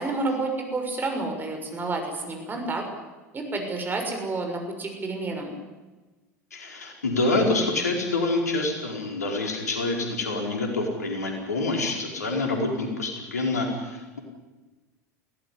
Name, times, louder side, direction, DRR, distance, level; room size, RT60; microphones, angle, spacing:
voice 1, 0.0-2.9 3.3-5.5, right 3 dB, 20° right, 4 dB, 6.3 m, -29 dB
voice 2, 6.5-14.2, left 2 dB, 75° left, 2 dB, 4.6 m, -27 dB
21.0 x 17.0 x 9.9 m, 1.2 s
figure-of-eight pair, 75°, 9 cm